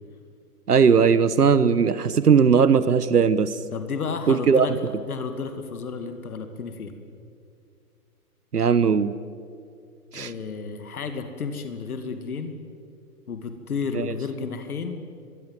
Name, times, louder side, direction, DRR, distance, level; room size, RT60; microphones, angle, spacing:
voice 1, 0.7-3.6 4.3-4.7 8.5-9.1 10.1-10.3 13.9-14.0, right 6 dB, 85° right, 15 dB, 1.1 m, -18 dB
voice 2, 3.7-4.7 5.0-6.9 10.1-12.6 13.3-15.0, left 5 dB, 70° left, 8 dB, 2.4 m, -32 dB
24.5 x 23.0 x 7.6 m, 2.3 s
figure-of-eight pair, 125°, 45 cm